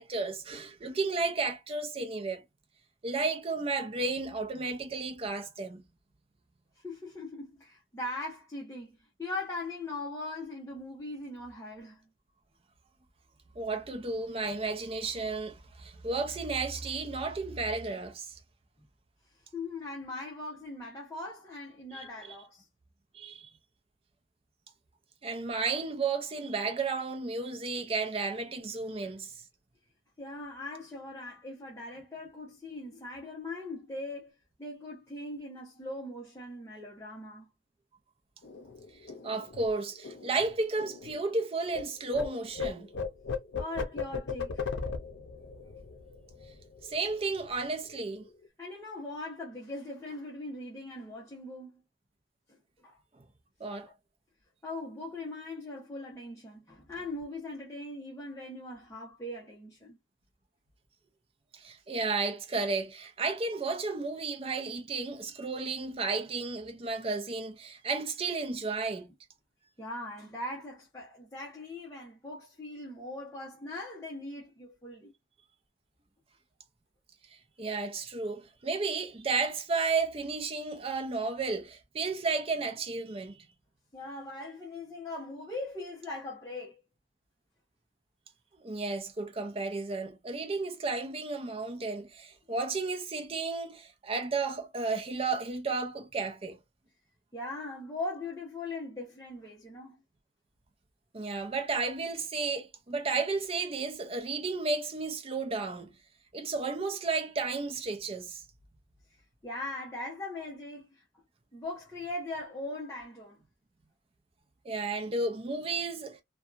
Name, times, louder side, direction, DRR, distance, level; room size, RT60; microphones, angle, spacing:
voice 1, 0.0-2.4 3.0-5.8 13.6-18.4 21.9-22.4 23.1-23.5 25.2-29.3 39.2-42.9 46.8-48.3 53.6-53.9 61.5-69.1 77.6-83.4 88.6-96.6 101.1-105.9 106.3-108.4 114.6-116.2, right 3 dB, 30° right, 0.5 m, -33 dB
voice 2, 6.8-12.1 19.5-22.7 29.0-29.1 30.2-34.3 34.6-37.5 43.6-44.8 48.6-51.8 52.5-53.0 53.7-53.9 54.6-60.0 69.8-75.1 83.9-86.8 97.3-100.0 109.4-111.0 111.5-113.4, left 2 dB, 15° left, 0.7 m, -40 dB
sound 1, 38.4-41.8 42.1-47.1 47.4-47.6 47.9-48.5, left 5 dB, 65° left, 0.6 m, -38 dB
2.7 x 2.3 x 2.4 m
head